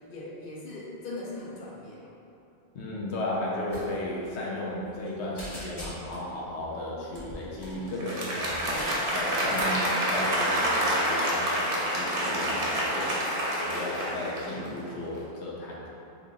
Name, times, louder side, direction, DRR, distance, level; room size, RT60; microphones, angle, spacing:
voice 1, 0.0-2.1, left 2 dB, 60° left, -4 dB, 0.8 m, -40 dB
voice 2, 2.7-8.7 9.1-13.2 13.6-15.9, left 1 dB, 85° left, -4 dB, 1.0 m, -35 dB
sound 1, 3.7-3.9 4.1-4.3 4.7-5.1 5.4-6.3 7.1-7.8 8.4-9.8 10.3-10.6, equal, 25° left, 0.6 m, -43 dB
Applause, 7.9-14.9, equal, 60° right, 0.8 m, -28 dB
2.9 x 2.5 x 3.6 m, 2.7 s
omnidirectional pair, 1.1 m